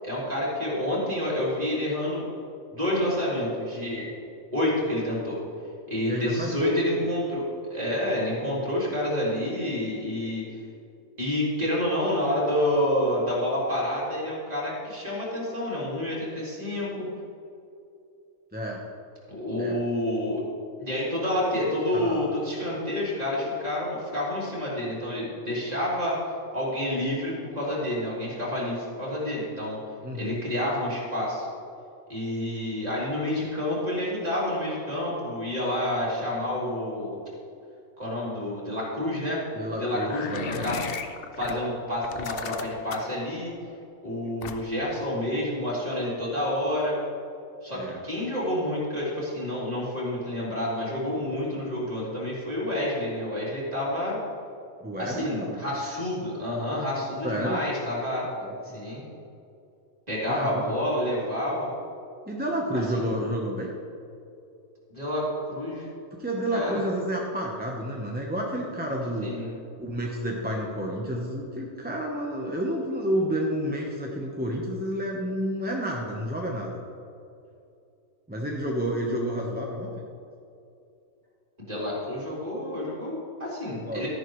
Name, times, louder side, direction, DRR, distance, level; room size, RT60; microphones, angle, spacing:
voice 1, 0.0-2.3 2.7-4.1 4.5-5.4 5.9-10.4 11.2-17.1 19.3-20.4 20.8-26.2 26.5-29.8 30.1-31.5 32.1-37.2 38.0-39.4 39.7-40.8 41.4-43.5 44.0-47.0 47.6-54.2 55.0-58.3 58.7-59.0 60.1-61.7 62.9-63.1 64.9-65.9 66.5-66.8 69.2-69.5 81.6-84.1, left 1 dB, 30° right, -7 dB, 3.2 m, -28 dB
voice 2, 6.0-6.9 18.5-18.8 19.6-19.8 21.9-22.3 30.0-30.3 39.5-40.5 47.7-48.0 54.8-55.9 57.2-57.6 58.3-58.8 60.3-60.7 62.3-63.7 66.1-69.3 69.8-76.8 78.3-79.9 83.8-84.1, equal, 10° right, -2 dB, 0.8 m, -30 dB
sound 1, 40.0-41.5 42.0-43.2 44.4-44.9, left 6 dB, 55° left, 0.7 m, -35 dB
13.0 x 11.0 x 3.2 m, 2.6 s
omnidirectional pair, 1.4 m